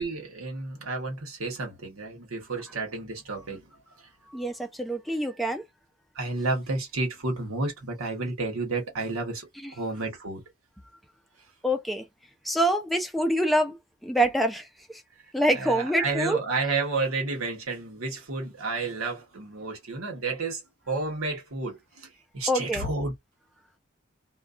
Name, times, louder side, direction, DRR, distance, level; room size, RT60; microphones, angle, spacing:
voice 1, 0.0-3.7 6.1-10.4 15.5-20.6 20.9-23.2, right 3 dB, 85° right, 1.1 m, -31 dB
voice 2, 4.3-5.6 9.6-9.7 11.6-12.0 12.4-15.0 15.3-16.4 22.5-22.9, right 1 dB, ahead, 0.4 m, -26 dB
2.3 x 2.2 x 2.4 m
head